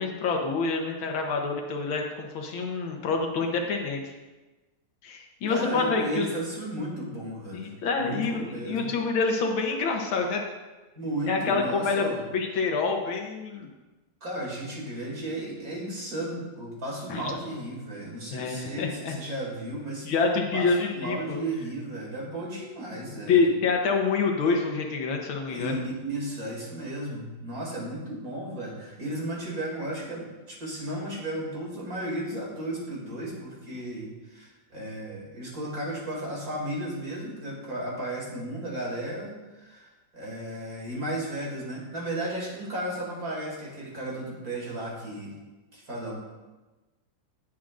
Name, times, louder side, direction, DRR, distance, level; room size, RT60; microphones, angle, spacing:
voice 1, 0.0-4.0 5.0-6.3 7.5-10.4 11.3-12.1 12.3-13.7 17.1-17.3 18.3-19.1 20.1-21.4 23.3-25.8, left 4 dB, 80° left, 2 dB, 1.8 m, -27 dB
voice 2, 5.5-7.7 8.0-8.9 10.9-12.2 14.2-23.4 25.5-45.3 45.7-46.2, right 1 dB, 45° right, -3 dB, 3.0 m, -34 dB
17.0 x 7.3 x 2.5 m, 1.2 s
omnidirectional pair, 2.2 m